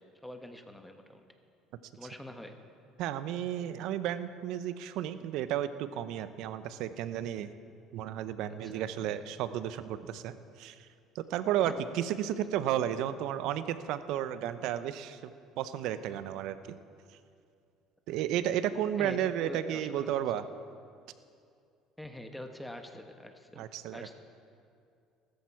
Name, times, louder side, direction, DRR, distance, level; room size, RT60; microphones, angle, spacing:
voice 1, 0.2-1.2 1.9-2.6 5.2-5.3 8.5-9.1 11.6-11.8 19.0-20.1 22.0-24.2, left 1 dB, 5° left, 6 dB, 1.1 m, -45 dB
voice 2, 3.0-7.5 7.9-10.9 11.1-16.8 18.1-20.4 23.6-24.2, right 11 dB, 70° right, 13 dB, 0.6 m, -33 dB
14.0 x 13.5 x 4.7 m, 2.4 s
supercardioid pair, 100°, 0 cm